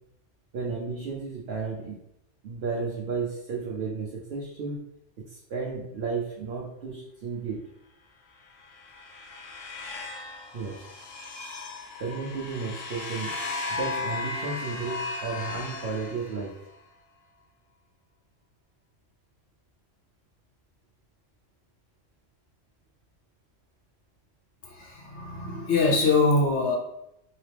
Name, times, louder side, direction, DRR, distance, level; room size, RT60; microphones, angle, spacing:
voice 1, 0.5-2.0 2.4-4.8 5.3-7.6 10.5-10.9 12.0-13.3 13.7-16.5, right 4 dB, 60° right, -4 dB, 0.9 m, -33 dB
sound 1, 8.5-16.8, left 3 dB, 90° left, 1.1 m, -36 dB
voice 2, 24.6-26.8, left 3 dB, 70° left, 0 dB, 0.9 m, -23 dB
3.8 x 3.0 x 3.3 m, 0.81 s
omnidirectional pair, 1.3 m